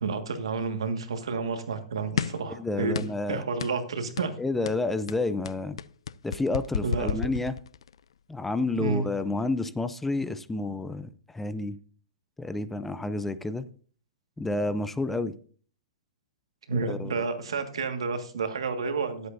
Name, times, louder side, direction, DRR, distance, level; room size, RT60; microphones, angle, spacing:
voice 1, 0.0-4.3 6.8-7.3 8.8-9.1 16.7-19.3, right 4 dB, 85° right, 1.7 m, -30 dB
sound 1, 2.2-2.5 2.9-3.3 3.6-3.8 4.2-4.4 4.7-8.0, left 8 dB, 85° left, 0.4 m, -32 dB
voice 2, 2.6-3.4 4.4-5.8 6.2-7.5 8.3-11.8 12.4-13.6 14.4-15.3 16.7-17.2, left 2 dB, 5° left, 0.5 m, -30 dB
17.0 x 8.0 x 2.6 m
hypercardioid pair, 140°, 3 cm